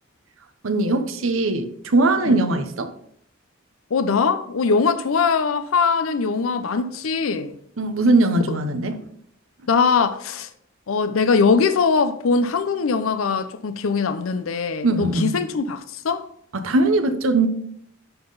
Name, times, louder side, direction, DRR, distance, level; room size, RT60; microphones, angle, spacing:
voice 1, 0.6-2.9 7.8-9.0 14.8-15.3 16.5-17.5, right 2 dB, 80° right, 0.9 m, -20 dB
voice 2, 3.9-7.6 9.7-10.5 10.9-16.2, left 5 dB, 85° left, 0.5 m, -21 dB
11.0 x 3.8 x 4.0 m
head